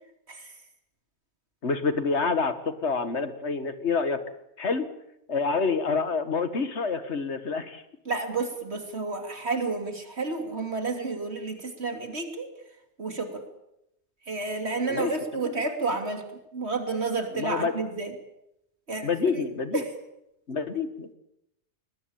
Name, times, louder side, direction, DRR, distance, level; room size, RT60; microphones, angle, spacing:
voice 1, 0.3-0.6 8.1-12.5 13.0-13.4 14.3-18.2 18.9-19.4 19.7-19.9, right 3 dB, 70° right, 6 dB, 3.3 m, -31 dB
voice 2, 1.6-4.2 4.6-4.9 5.3-7.8 14.9-15.1 15.4-15.5 17.3-17.7 19.0-19.8 20.5-21.1, left 4 dB, 80° left, 11 dB, 2.0 m, -27 dB
21.0 x 21.0 x 8.8 m, 0.83 s
omnidirectional pair, 1.1 m